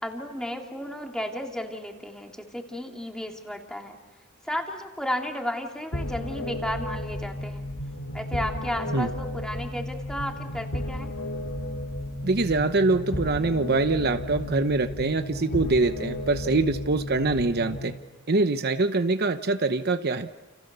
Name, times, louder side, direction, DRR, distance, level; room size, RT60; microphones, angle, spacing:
voice 1, 0.0-4.0 4.4-7.6 8.1-11.1, equal, 5° left, 2 dB, 2.9 m, -33 dB
sound 1, 5.9-17.9, left 1 dB, 80° left, 2.7 m, -33 dB
voice 2, 12.2-17.9 18.3-20.3, right 3 dB, 50° right, 9 dB, 0.9 m, -24 dB
29.5 x 29.5 x 6.9 m, 1.2 s
head